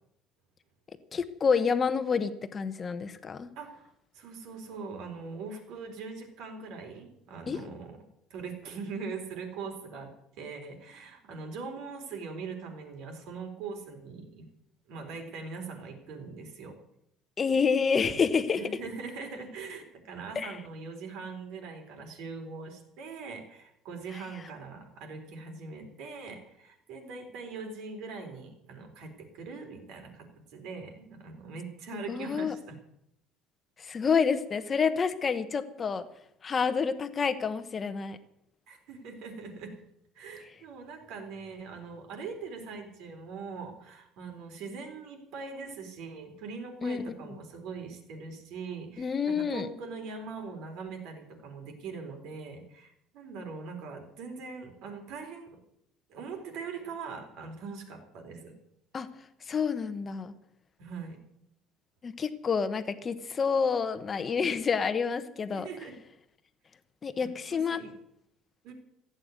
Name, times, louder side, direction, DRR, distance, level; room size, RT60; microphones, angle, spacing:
voice 1, 1.1-3.5 7.5-7.6 17.4-18.6 20.3-20.6 31.9-32.5 33.8-36.1 36.4-38.2 46.8-47.0 49.0-49.7 58.9-59.1 59.5-60.3 62.0-65.7 67.0-67.8, left 5 dB, 25° left, 10 dB, 1.1 m, -28 dB
voice 2, 3.6-8.0 8.3-14.5 14.9-16.7 18.5-32.8 38.7-39.8 40.1-55.6 56.1-58.5 60.8-61.2 65.5-66.0 67.2-67.9 68.6-68.7, right 4 dB, 65° right, 4 dB, 4.1 m, -42 dB
15.0 x 8.9 x 9.5 m, 0.76 s
cardioid pair, 160°, 0 cm